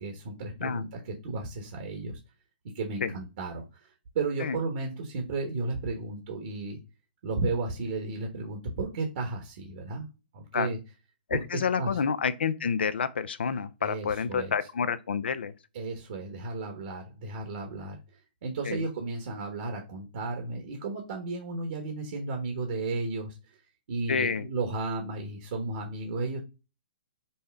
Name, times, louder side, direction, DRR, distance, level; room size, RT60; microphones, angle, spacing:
voice 1, 0.0-2.2 2.7-3.9 4.1-6.8 7.2-10.1 10.3-10.8 11.3-11.4 11.8-11.9 13.8-14.5 15.7-18.0 18.4-23.6 23.9-26.4, right 3 dB, 55° right, 1.1 m, -33 dB
voice 2, 11.3-15.5 18.6-18.9 24.1-24.5, left 6 dB, 80° left, 0.5 m, -29 dB
5.5 x 2.1 x 3.5 m
hypercardioid pair, 140°, 6 cm